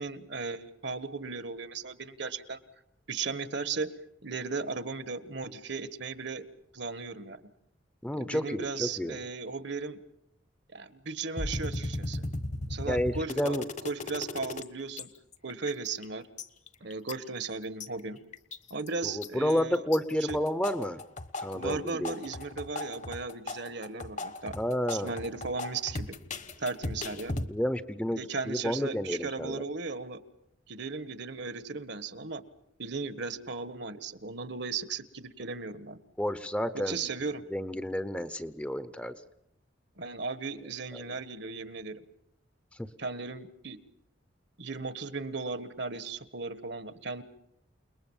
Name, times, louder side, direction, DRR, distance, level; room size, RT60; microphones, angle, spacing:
voice 1, 0.0-2.6 3.1-3.9 4.2-6.5 6.7-7.4 8.2-10.0 10.7-12.2 12.7-13.6 13.8-15.1 15.4-16.3 16.8-18.2 18.7-19.8 20.3-20.4 21.5-24.5 24.9-26.2 26.6-27.4 28.1-30.2 30.7-32.4 32.8-36.0 36.9-37.4 40.0-42.0 43.0-43.8 44.6-47.2, right 4 dB, 60° right, 13 dB, 1.5 m, -36 dB
voice 2, 8.0-9.2 12.9-13.6 19.0-21.0 21.4-22.2 24.5-25.1 27.5-28.2 28.5-29.6 36.2-37.1 37.5-39.1 40.9-41.2 42.8-42.9, equal, 5° left, 12 dB, 0.8 m, -30 dB
sound 1, 11.4-14.6 15.0-15.1 15.3-16.0 16.4-17.9 18.3-18.9 19.2-20.0 20.3-27.5, left 2 dB, 40° left, 1.3 m, -36 dB
29.0 x 20.5 x 7.4 m, 0.79 s
head